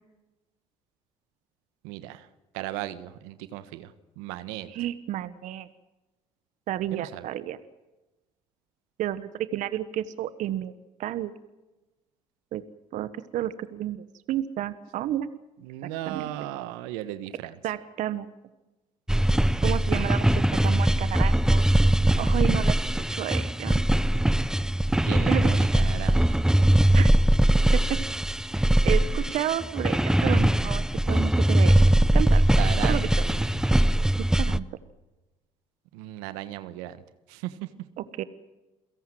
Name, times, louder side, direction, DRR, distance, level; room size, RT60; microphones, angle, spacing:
voice 1, 1.8-2.3 2.5-4.7 6.9-7.3 15.6-17.6 25.1-26.4 32.6-33.5 35.9-37.0 37.3-37.7, right 14 dB, 80° right, 13 dB, 1.4 m, -36 dB
voice 2, 4.6-5.7 6.7-7.6 9.0-10.7 11.0-11.3 12.5-12.6 12.9-15.3 15.8-16.3 17.6-18.3 19.6-21.6 22.2-23.8 25.3-25.5 26.9-27.1 27.7-28.0 28.8-32.4 32.8-33.1 34.4-34.7 38.0-38.2, right 12 dB, 65° right, 14 dB, 1.3 m, -31 dB
sound 1, 19.1-34.6, right 1 dB, 5° right, 0.9 m, -21 dB
29.0 x 17.0 x 7.7 m, 1.1 s
hypercardioid pair, 70°, 14 cm